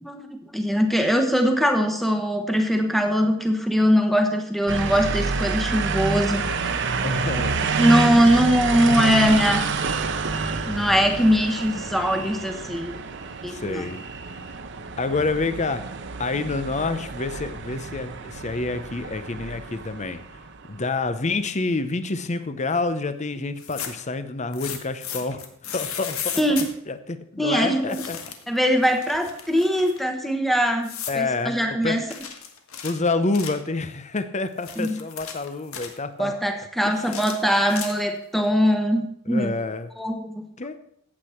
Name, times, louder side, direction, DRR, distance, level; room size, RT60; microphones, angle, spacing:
voice 1, 0.0-6.8 7.8-9.7 10.7-13.0 13.4-13.9 26.4-26.6 27.4-28.0 28.5-32.0 34.8-35.0 36.2-39.5 40.0-40.5, equal, ahead, 5 dB, 1.2 m, -21 dB
sound 1, 4.7-20.8, right 4 dB, 55° right, 0.9 m, -28 dB
voice 2, 7.0-7.6 13.4-14.0 15.0-15.8 16.2-20.2 20.7-26.4 26.9-28.2 31.1-31.6 31.8-32.0 32.8-36.3 36.8-37.2 39.3-39.9 40.6-40.8, left 3 dB, 30° left, 11 dB, 0.7 m, -28 dB
sound 2, 23.5-24.1 24.5-26.7 27.9-28.5 28.8-30.0 30.8-31.2 32.1-33.7 34.4-36.0 37.0-38.2, left 8 dB, 70° left, 1.5 m, -35 dB
15.0 x 8.4 x 4.5 m, 0.70 s
head